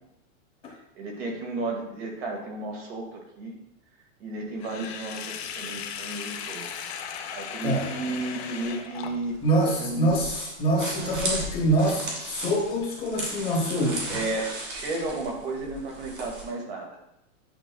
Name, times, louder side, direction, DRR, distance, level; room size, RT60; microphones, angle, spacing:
voice 1, 1.0-3.6 4.2-6.8 7.3-9.4 9.6-10.1 14.1-16.9, right 2 dB, 50° right, 1 dB, 1.9 m, -33 dB
Sink (filling or washing), 4.6-9.5, left 7 dB, 50° left, 0.7 m, -37 dB
sound 1, 9.2-16.4, right 1 dB, 25° right, 1.7 m, -36 dB
voice 2, 9.4-14.2, right 1 dB, 15° left, -3 dB, 1.0 m, -25 dB
9.8 x 5.5 x 2.3 m, 0.82 s
supercardioid pair, 170°, 40 cm